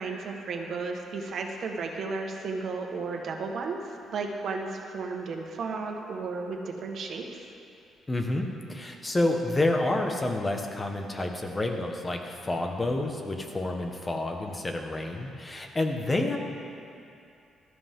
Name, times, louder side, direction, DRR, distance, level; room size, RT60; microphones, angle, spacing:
voice 1, 0.0-7.4, right 4 dB, 60° right, 2 dB, 1.6 m, -34 dB
voice 2, 8.1-16.4, left 2 dB, 20° left, 3 dB, 1.5 m, -29 dB
17.0 x 13.0 x 3.8 m, 2.6 s
cardioid pair, 90°, 0 cm